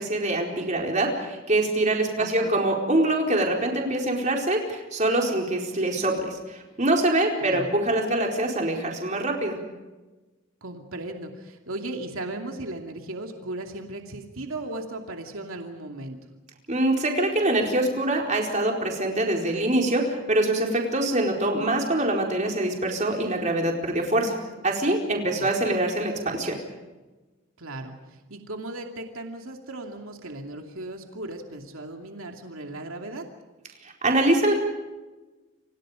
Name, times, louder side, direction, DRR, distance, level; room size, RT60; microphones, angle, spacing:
voice 1, 0.0-9.6 16.7-24.3 24.6-26.5 33.8-34.5, right 1 dB, 35° right, 1 dB, 4.5 m, -24 dB
voice 2, 2.2-2.6 7.4-7.6 10.6-16.2 25.4-25.5 27.6-27.9 28.3-33.2, right 2 dB, 80° right, 3 dB, 2.6 m, -36 dB
29.5 x 25.5 x 5.1 m, 1.2 s
head